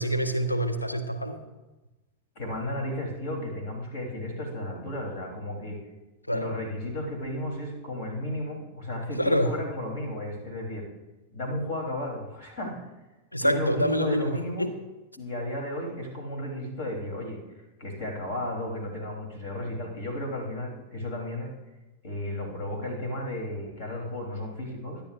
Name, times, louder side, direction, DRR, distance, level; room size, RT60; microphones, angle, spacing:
voice 1, 0.0-1.4 6.3-6.5 9.2-9.5 13.3-14.3 14.6-14.7, equal, 85° left, 5 dB, 1.2 m, -26 dB
voice 2, 2.4-5.8 6.3-10.9 11.3-12.8 13.4-14.7 15.2-17.4 17.8-21.5 22.0-25.0, left 1 dB, 50° left, 1 dB, 3.5 m, -33 dB
23.0 x 10.5 x 2.6 m, 1.1 s
figure-of-eight pair, 90°, 0 cm